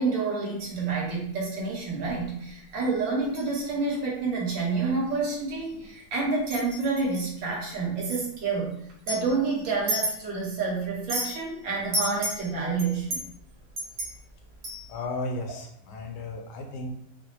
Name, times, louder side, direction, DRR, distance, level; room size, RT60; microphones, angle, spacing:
voice 1, 0.0-8.7 9.1-13.2, right 4 dB, 70° right, -4 dB, 1.9 m, -28 dB
sound 1, 0.6-0.9 2.1-2.3 2.8-3.5 3.9-4.0 4.6-4.8 5.1-6.0 6.4-7.2 8.1-8.2 8.9-10.6 10.8-11.4 11.9-15.0, equal, 50° right, 1.4 m, -33 dB
voice 2, 14.9-16.9, left 2 dB, 70° left, 3 dB, 1.0 m, -34 dB
5.6 x 2.0 x 3.1 m, 0.71 s
omnidirectional pair, 2.2 m